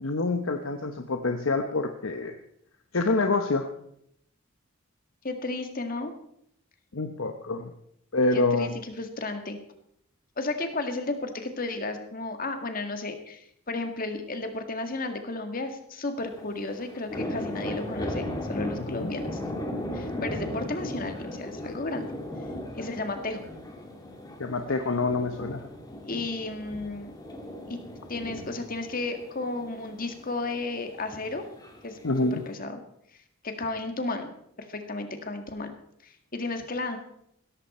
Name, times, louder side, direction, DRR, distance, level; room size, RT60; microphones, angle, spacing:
voice 1, 0.0-2.4 2.9-3.7 6.9-7.7 8.1-8.7 18.9-19.1 24.4-25.6 32.0-32.4, left 3 dB, 75° left, 6 dB, 1.0 m, -26 dB
voice 2, 5.2-6.1 8.3-9.6 10.4-19.4 19.9-22.1 22.8-23.4 26.0-27.1 27.7-27.8 28.1-31.4 31.8-32.0 32.3-32.8 33.4-35.7 36.0-37.0, left 2 dB, 45° left, 6 dB, 1.9 m, -33 dB
sound 1, 16.2-32.5, left 1 dB, 20° left, 2.2 m, -37 dB
16.5 x 14.0 x 4.3 m, 0.73 s
head